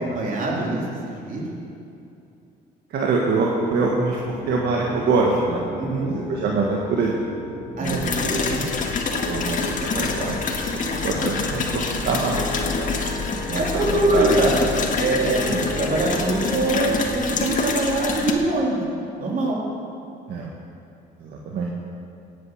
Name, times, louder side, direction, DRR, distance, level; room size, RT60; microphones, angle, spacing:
voice 1, 0.0-1.5 5.8-6.2 7.8-8.7 12.8-14.6 15.0-15.5 15.8-18.8 19.2-19.6, right 2 dB, 45° right, -3 dB, 3.8 m, -24 dB
voice 2, 2.9-5.7 6.0-7.2 7.8-8.1 9.3-12.7 13.5-13.8 14.1-14.3 15.5-15.6 20.3-20.5 21.2-21.7, right 4 dB, 65° right, -2 dB, 1.8 m, -24 dB
Piano, 4.2-17.1, left 1 dB, 20° left, 3.1 m, -36 dB
sound 1, 7.8-18.3, left 4 dB, 45° left, 1.8 m, -26 dB
15.5 x 9.5 x 6.4 m, 2.6 s
cardioid pair, 90°, 19 cm